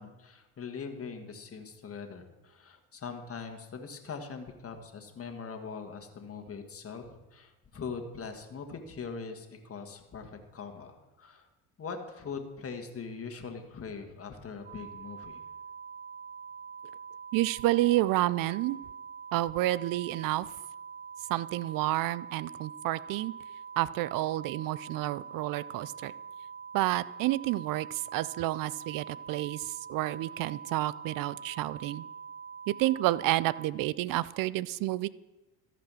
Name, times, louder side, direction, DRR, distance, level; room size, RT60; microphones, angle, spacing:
voice 1, 0.0-11.5 11.8-15.4, left 5 dB, 35° left, 5 dB, 1.7 m, -42 dB
sound 1, 14.6-33.7, right 6 dB, 25° right, 1.0 m, -45 dB
voice 2, 17.3-18.8 19.3-20.5 21.3-23.3 23.8-26.1 26.7-32.0 32.7-35.1, right 16 dB, 55° right, 20 dB, 0.5 m, -30 dB
13.5 x 5.1 x 6.2 m, 1.1 s
supercardioid pair, 75°, 41 cm